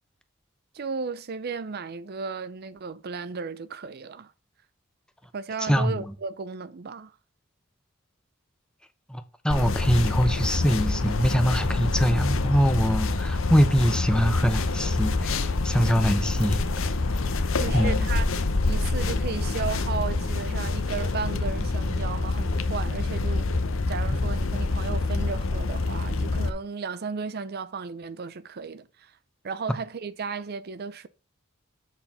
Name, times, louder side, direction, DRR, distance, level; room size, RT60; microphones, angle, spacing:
voice 1, 0.7-4.3 5.3-7.1 17.6-18.3 18.7-23.6 23.9-29.1 29.4-31.1, right 5 dB, 45° right, 0.5 m, -34 dB
voice 2, 5.6-6.1 9.1-16.6 17.7-18.1 24.1-24.2, equal, 5° left, 0.7 m, -24 dB
sound 1, 9.5-26.5, left 3 dB, 65° left, 0.8 m, -26 dB
7.9 x 4.5 x 5.4 m
head